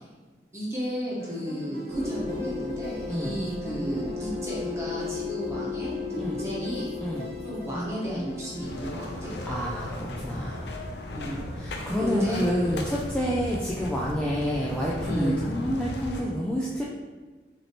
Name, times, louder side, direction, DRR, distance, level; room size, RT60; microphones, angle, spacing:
voice 1, 0.5-6.9 7.4-9.3 11.1-11.4 12.0-12.7 15.0-15.3, equal, 15° right, -7 dB, 1.2 m, -33 dB
sound 1, 1.2-9.9, equal, 30° left, 0.7 m, -40 dB
sound 2, 1.9-11.0, left 5 dB, 65° right, 1.0 m, -37 dB
sound 3, 8.6-16.2, left 1 dB, 70° left, 0.6 m, -36 dB
voice 2, 9.4-10.7 11.5-16.8, equal, 5° left, -6 dB, 0.3 m, -29 dB
6.0 x 2.8 x 3.0 m, 1.4 s
head